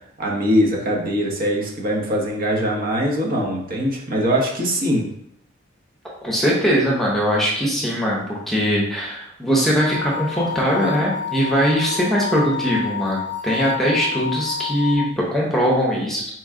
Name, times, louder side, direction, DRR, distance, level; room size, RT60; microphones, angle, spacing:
voice 1, 0.2-5.1, equal, 50° right, -2 dB, 1.0 m, -22 dB
voice 2, 6.2-16.3, equal, ahead, -4 dB, 0.8 m, -21 dB
sound 1, 9.8-15.0, left 8 dB, 30° right, 1.8 m, -29 dB
4.4 x 3.0 x 3.6 m, 0.73 s
head